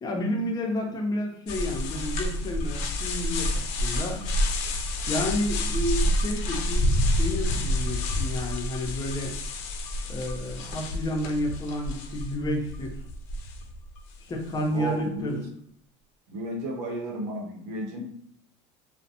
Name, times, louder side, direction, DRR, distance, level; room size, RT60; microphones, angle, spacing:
voice 1, 0.0-4.3 5.1-9.3 10.1-13.0 14.2-15.4, left 1 dB, 25° left, 0 dB, 0.6 m, -30 dB
sound 1, 1.5-14.0, left 1 dB, 70° left, 0.5 m, -28 dB
voice 2, 14.7-15.5 16.3-18.0, right 1 dB, 75° right, 0 dB, 0.8 m, -33 dB
2.3 x 2.1 x 2.7 m, 0.68 s
supercardioid pair, 95°, 15 cm